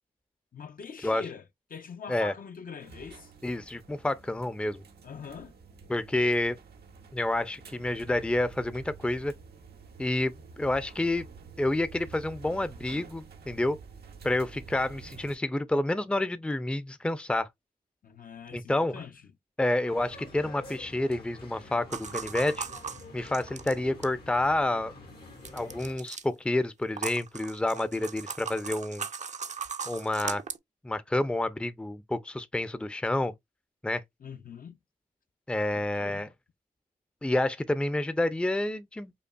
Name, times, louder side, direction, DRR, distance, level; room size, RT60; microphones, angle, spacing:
voice 1, 0.5-1.4 1.7-3.3 5.0-5.5 18.0-19.2 34.2-34.8 35.7-36.2, left 6 dB, 60° left, 0.6 m, -43 dB
sound 1, 2.8-15.4, right 5 dB, 85° right, 0.8 m, -49 dB
voice 2, 3.4-4.8 5.9-6.6 7.1-9.3 10.0-11.2 11.6-13.8 14.2-17.5 18.5-19.0 19.6-22.7 23.1-24.9 25.5-29.1 29.9-30.4 30.8-33.3 33.8-34.0 35.5-36.3 37.2-39.1, left 1 dB, 5° left, 0.5 m, -29 dB
sound 2, 19.9-26.0, left 2 dB, 80° left, 1.4 m, -48 dB
sound 3, 21.9-24.2 25.4-26.2 26.9-30.6, right 6 dB, 45° right, 0.5 m, -38 dB
5.2 x 2.3 x 2.2 m
cardioid pair, 60°, 16 cm